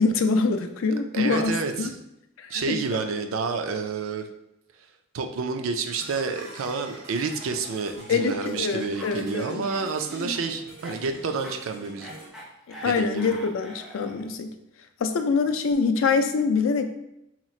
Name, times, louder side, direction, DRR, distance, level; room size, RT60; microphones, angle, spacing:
voice 1, 0.0-1.5 1.8-1.9 2.4-2.8 8.1-9.6 12.8-14.5 15.0-16.9, left 4 dB, 80° left, 8 dB, 0.4 m, -24 dB
voice 2, 1.1-2.0 2.5-4.3 5.1-12.1 12.8-13.3, right 4 dB, 90° right, 6 dB, 0.4 m, -29 dB
sound 1, 5.9-12.3, right 1 dB, 70° right, 1.2 m, -43 dB
Cough, 7.8-14.3, equal, ahead, 0.6 m, -45 dB
2.9 x 2.4 x 4.2 m, 0.83 s
head